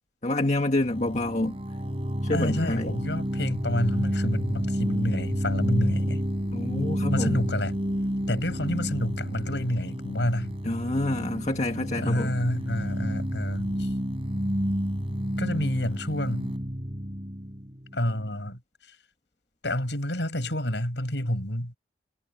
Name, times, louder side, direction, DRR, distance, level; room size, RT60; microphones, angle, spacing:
voice 1, 0.2-1.6 2.2-2.9 6.5-7.4 10.6-12.4, left 2 dB, 40° left, 1.6 m, -27 dB
sound 1, 0.8-18.4, equal, 30° right, 3.6 m, -30 dB
voice 2, 2.3-6.2 7.1-7.8 8.3-10.5 12.0-13.9 15.4-16.5 17.9-18.6 18.9-19.0 19.6-21.7, left 1 dB, 70° left, 6.1 m, -29 dB
head